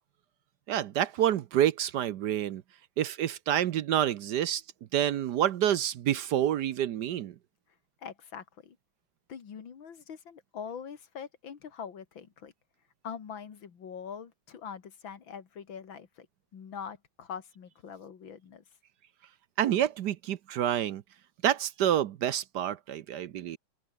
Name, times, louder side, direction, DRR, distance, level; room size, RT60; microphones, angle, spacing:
voice 1, 0.7-2.6 3.0-4.6 4.9-7.3 19.6-21.0 21.4-23.6, right 11 dB, 65° right, 1.2 m, -28 dB
voice 2, 8.0-8.8 9.3-12.5 13.0-16.3 16.5-18.6, left 7 dB, 80° left, 2.7 m, -43 dB
open air
omnidirectional pair, 2.1 m